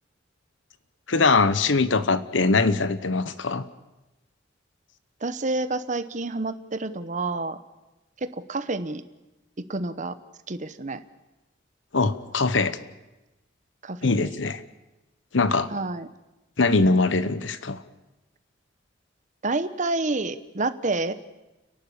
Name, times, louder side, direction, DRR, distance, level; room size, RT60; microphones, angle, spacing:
voice 1, 1.1-3.6 11.9-12.8 14.0-14.6 15.3-15.7 16.6-17.8, left 3 dB, 80° left, 14 dB, 1.1 m, -22 dB
voice 2, 5.2-7.6 8.2-9.0 9.7-10.2 10.5-11.0 13.8-14.3 15.7-16.1 19.4-21.1, right 3 dB, 40° right, 12 dB, 0.9 m, -28 dB
30.0 x 11.5 x 8.6 m, 1.0 s
head